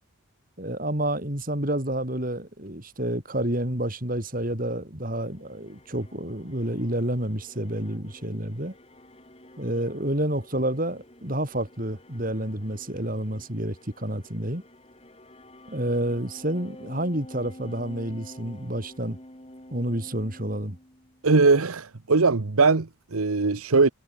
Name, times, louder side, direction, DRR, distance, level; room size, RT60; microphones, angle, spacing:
voice 1, 0.6-8.7 9.6-14.6 15.7-19.2 19.7-20.8, right 1 dB, 40° right, 4.2 m, -29 dB
sound 1, 5.0-21.3, left 1 dB, 25° left, 6.0 m, -49 dB
voice 2, 21.2-23.9, right 4 dB, 90° right, 1.0 m, -20 dB
head